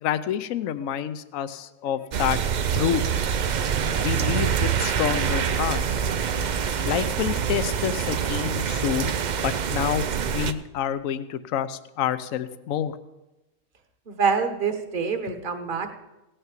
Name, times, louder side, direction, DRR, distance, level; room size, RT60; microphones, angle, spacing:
voice 1, 0.0-2.4 2.7-3.0 4.0-6.0 6.9-9.1 9.4-12.9, left 10 dB, 70° left, 13 dB, 1.1 m, -28 dB
sound 1, 2.1-10.5, right 7 dB, 90° right, 0.4 m, -25 dB
voice 2, 14.1-15.9, right 5 dB, 40° right, 7 dB, 1.2 m, -26 dB
17.0 x 6.7 x 7.4 m, 1.0 s
omnidirectional pair, 1.5 m